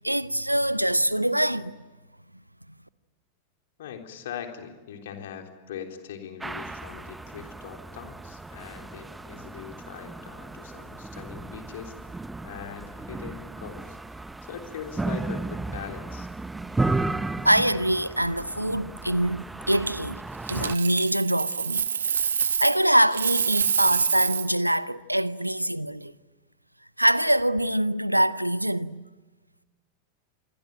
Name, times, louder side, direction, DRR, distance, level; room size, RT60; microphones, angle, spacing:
voice 1, 0.0-1.7 17.4-20.2 20.5-26.1 27.0-29.0, right 1 dB, 90° right, 0.8 m, -24 dB
voice 2, 3.8-16.3, left 8 dB, 60° left, 3.6 m, -41 dB
sound 1, 6.4-20.8, right 2 dB, 10° right, 0.8 m, -34 dB
Coin (dropping), 20.5-22.8 23.1-24.6 27.4-27.6, right 7 dB, 70° right, 1.2 m, -27 dB
26.5 x 22.0 x 9.2 m
figure-of-eight pair, 90°, 0 cm